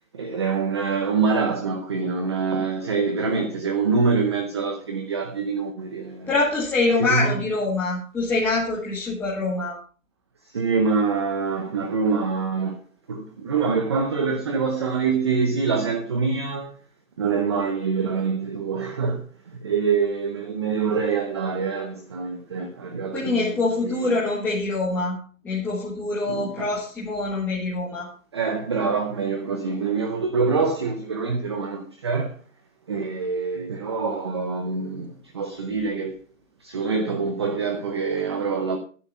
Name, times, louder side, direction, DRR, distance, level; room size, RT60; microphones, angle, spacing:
voice 1, 0.1-6.3 7.1-7.3 10.5-12.8 13.1-16.7 17.2-19.2 19.6-23.5 23.9-24.2 26.3-26.5 28.3-32.3 32.9-35.1 35.3-36.2 36.6-38.8, right 5 dB, 20° right, 0.7 m, -25 dB
voice 2, 6.3-9.8 23.1-25.2 25.4-28.1, left 3 dB, 5° left, 1.5 m, -25 dB
11.0 x 9.7 x 5.6 m
figure-of-eight pair, 155°, 41 cm